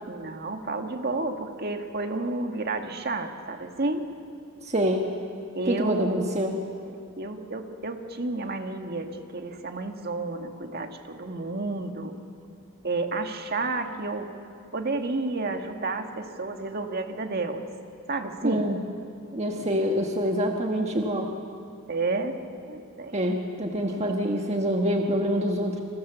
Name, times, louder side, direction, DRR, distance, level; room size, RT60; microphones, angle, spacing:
voice 1, 0.1-4.0 5.5-6.3 7.2-12.1 12.8-14.3 14.7-17.7 18.1-18.7 19.5-19.8 21.9-22.4 22.7-23.2 23.9-24.0, right 3 dB, 50° right, 5 dB, 1.9 m, -31 dB
voice 2, 4.6-5.1 5.7-6.6 18.4-18.8 19.3-21.3 23.1-25.8, equal, 30° right, 2 dB, 1.4 m, -26 dB
29.0 x 26.5 x 7.0 m, 2.5 s
head